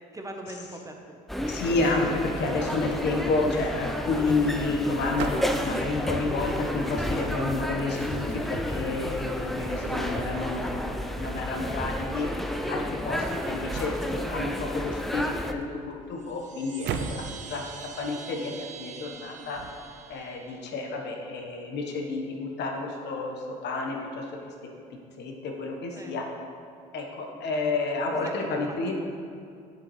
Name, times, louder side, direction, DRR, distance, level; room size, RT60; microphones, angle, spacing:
voice 1, 0.1-1.2 25.9-26.1 28.1-29.0, right 1 dB, 15° right, 3 dB, 0.9 m, -41 dB
sound 1, 1.3-15.5, equal, ahead, 0.5 m, -31 dB
voice 2, 1.5-12.3 12.7-17.2 17.5-17.6 18.0-19.6 20.1-23.4 23.6-24.2 25.2-26.2 26.9-29.0, left 3 dB, 65° left, 1 dB, 1.2 m, -30 dB
sound 2, 5.0-20.2, right 6 dB, 65° right, 0.6 m, -43 dB
Chime, 16.1-20.8, right 7 dB, 40° right, 1.5 m, -45 dB
7.6 x 7.1 x 3.2 m, 2.4 s
hypercardioid pair, 65°, 20 cm